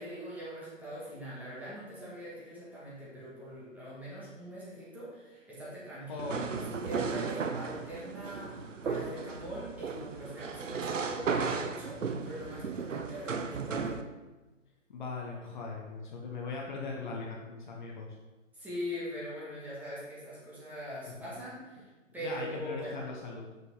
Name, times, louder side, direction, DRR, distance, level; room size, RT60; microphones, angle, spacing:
voice 1, 0.0-14.0 18.5-21.8 22.1-23.0, equal, 5° right, -8 dB, 1.5 m, -42 dB
voice 2, 6.1-6.7 8.4-8.6 14.9-18.2 21.1-21.3 22.2-23.5, left 3 dB, 35° left, -1 dB, 1.0 m, -40 dB
sound 1, 6.2-14.0, right 5 dB, 75° right, 0.8 m, -35 dB
6.2 x 5.4 x 4.7 m, 1.2 s
figure-of-eight pair, 135°, 39 cm